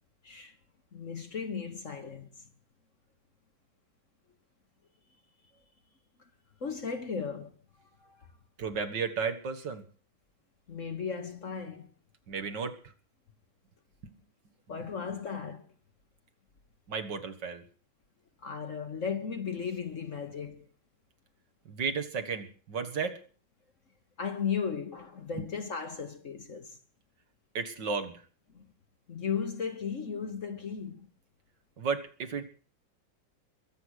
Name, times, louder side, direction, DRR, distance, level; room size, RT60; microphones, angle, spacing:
voice 1, 0.2-0.5 0.9-2.3 6.6-7.5 8.0-8.3 10.7-11.9 14.7-15.7 18.4-20.7 24.2-26.8 28.5-28.6 29.1-31.1, left 6 dB, 45° left, 1.3 m, -36 dB
voice 2, 8.6-9.8 12.3-12.8 16.9-17.6 21.7-23.2 27.5-28.1 31.8-32.4, right 5 dB, 65° right, 2.2 m, -33 dB
22.0 x 7.9 x 6.5 m
omnidirectional pair, 2.1 m